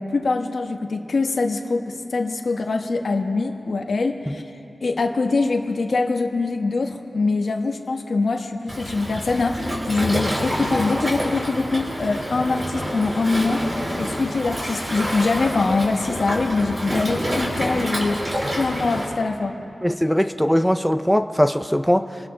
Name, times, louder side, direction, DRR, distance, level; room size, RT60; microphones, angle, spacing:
voice 1, 0.0-4.4 4.8-13.7 14.0-19.6, left 3 dB, 70° left, 3 dB, 1.2 m, -23 dB
Waves surf, 8.7-19.1, equal, 35° right, 4.6 m, -27 dB
voice 2, 19.8-22.3, equal, 5° left, 7 dB, 0.4 m, -20 dB
27.0 x 19.0 x 2.2 m, 2.7 s
wide cardioid pair, 70°, 0 cm